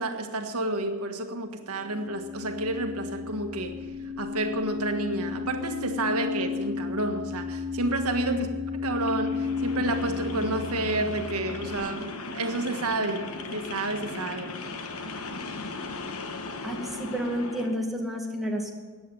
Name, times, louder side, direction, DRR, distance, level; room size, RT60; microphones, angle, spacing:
voice 1, 0.0-3.8 4.2-8.5 8.8-13.2 13.5-14.5, right 2 dB, 85° right, 5 dB, 1.6 m, -30 dB
sound 1, 1.6-11.7, left 5 dB, 40° left, 4.2 m, -33 dB
sound 2, 8.9-17.8, left 3 dB, 75° left, 1.4 m, -37 dB
voice 2, 16.6-18.7, equal, ahead, -1 dB, 2.0 m, -30 dB
15.0 x 9.6 x 9.1 m, 1.5 s
head